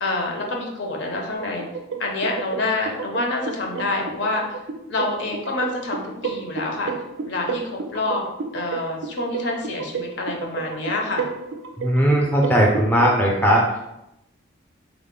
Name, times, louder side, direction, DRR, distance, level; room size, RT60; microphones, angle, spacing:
voice 1, 0.0-1.7 2.0-4.6 4.9-6.9 7.3-8.2 8.5-11.3, left 2 dB, 60° left, 1 dB, 0.6 m, -27 dB
sound 1, 1.4-13.2, right 5 dB, 60° right, 0.3 m, -32 dB
voice 2, 11.8-13.6, equal, 10° left, -2 dB, 0.4 m, -18 dB
3.5 x 2.0 x 3.7 m, 0.86 s
head